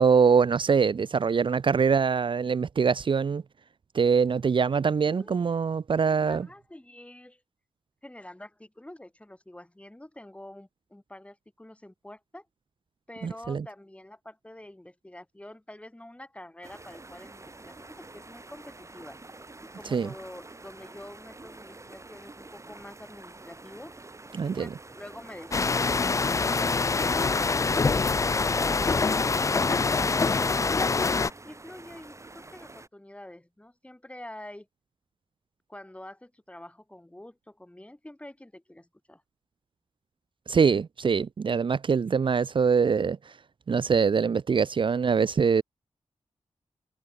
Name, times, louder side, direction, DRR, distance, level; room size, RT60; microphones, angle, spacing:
voice 1, 0.0-3.4 3.9-6.5 13.2-13.6 19.9-20.1 24.3-24.7 40.5-43.2 43.7-45.6, right 6 dB, 50° right, 0.5 m, -23 dB
voice 2, 5.1-5.4 5.9-7.4 8.0-12.5 13.1-19.2 19.6-24.0 24.6-27.4 31.4-34.7 35.7-39.2, left 1 dB, 10° left, 7.8 m, -46 dB
sound 1, 16.6-32.9, right 2 dB, 30° right, 6.6 m, -47 dB
sound 2, 25.5-31.3, left 4 dB, 30° left, 0.4 m, -25 dB
wide cardioid pair, 100°, 11 cm